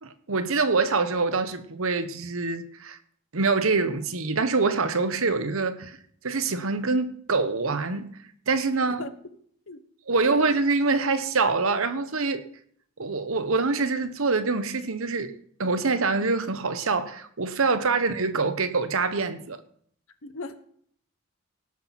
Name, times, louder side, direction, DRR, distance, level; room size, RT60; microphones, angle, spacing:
voice 1, 0.0-3.0 3.3-6.0 6.2-8.1 8.5-9.0 10.1-12.4 13.0-15.3 15.6-19.6, right 4 dB, 70° right, 1.0 m, -25 dB
voice 2, 10.1-10.5 17.9-18.0 20.2-20.6, left 3 dB, 65° left, 1.0 m, -39 dB
18.0 x 6.2 x 5.8 m
head